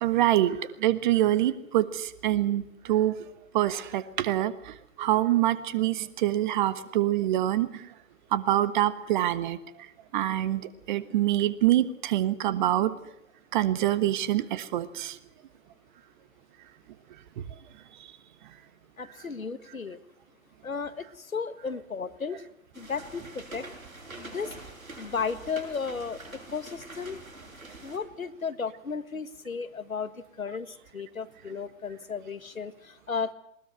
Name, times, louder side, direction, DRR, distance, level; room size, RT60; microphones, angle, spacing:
voice 1, 0.0-3.1 3.5-7.9 8.3-9.6 10.1-10.6 10.9-12.9 13.5-15.2, right 13 dB, 35° right, 15 dB, 1.4 m, -25 dB
voice 2, 19.0-20.0 20.6-21.0 21.3-22.4 22.8-23.6 24.2-24.5 25.0-26.2 26.5-27.2 27.8-30.1 30.4-30.7 30.9-33.3, left 5 dB, 75° left, 13 dB, 1.6 m, -34 dB
sound 1, 22.7-28.0, right 2 dB, 80° right, 7.8 m, -45 dB
20.5 x 20.0 x 8.0 m, 0.75 s
figure-of-eight pair, 115°, 41 cm